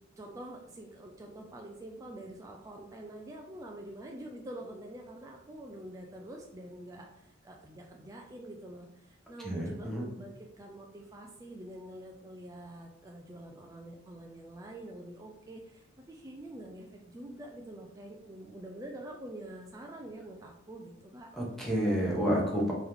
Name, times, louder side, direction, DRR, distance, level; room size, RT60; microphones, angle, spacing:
voice 1, 0.2-21.3, right 1 dB, 15° right, 0 dB, 0.4 m, -46 dB
voice 2, 9.4-10.1 21.3-22.7, equal, ahead, -3 dB, 1.0 m, -29 dB
3.5 x 3.0 x 3.6 m, 0.81 s
head